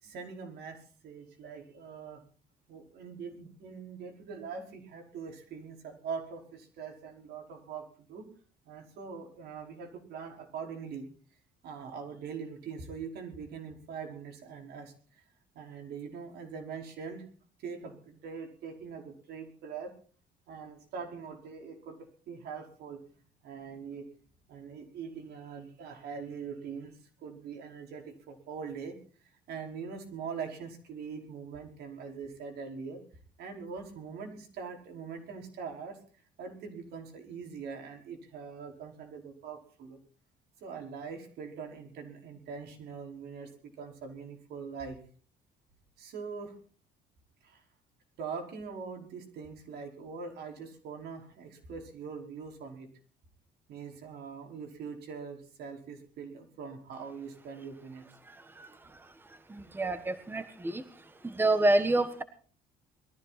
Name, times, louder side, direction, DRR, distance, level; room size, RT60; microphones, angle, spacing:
voice 1, 0.0-2.2 2.7-8.3 8.7-11.1 11.6-15.2 15.5-17.3 17.6-19.9 20.5-23.0 23.4-24.1 24.5-29.0 29.5-33.0 33.4-36.0 36.4-40.0 40.6-43.5 43.8-45.0 46.0-46.5 47.4-47.6 48.2-52.9 53.7-58.1, right 5 dB, 70° right, 3 dB, 5.1 m, -42 dB
voice 2, 58.3-58.7 59.5-60.8 61.2-62.2, right 2 dB, 10° right, 11 dB, 1.4 m, -28 dB
21.5 x 14.5 x 4.3 m, 0.42 s
cardioid pair, 110°, 17 cm